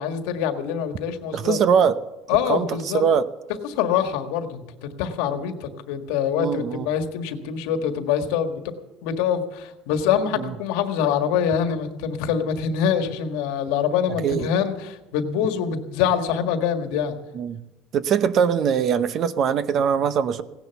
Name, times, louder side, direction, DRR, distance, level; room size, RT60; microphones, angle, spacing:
voice 1, 0.0-1.6 2.3-3.0 3.6-8.6 9.0-17.1, left 8 dB, 80° left, 7 dB, 1.7 m, -25 dB
voice 2, 1.3-2.0 2.5-2.7 2.9-3.3 6.4-6.9 10.4-10.5 14.2-14.5 17.3-17.6 17.9-20.4, right 7 dB, 40° right, 13 dB, 0.8 m, -21 dB
17.0 x 10.5 x 7.0 m, 1.0 s
cardioid pair, 150°, 0 cm